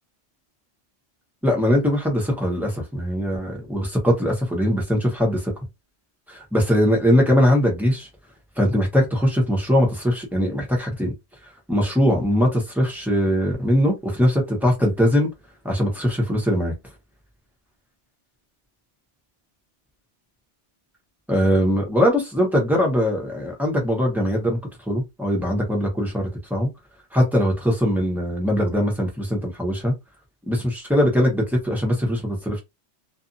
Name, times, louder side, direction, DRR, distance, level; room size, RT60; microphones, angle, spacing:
voice 1, 1.4-5.5 6.3-8.1 8.6-11.1 11.7-15.3 15.6-16.7 21.3-24.6 24.9-26.7 27.1-29.9 30.5-32.6, equal, ahead, 0.9 m, -21 dB
2.6 x 2.5 x 2.6 m
omnidirectional pair, 1.2 m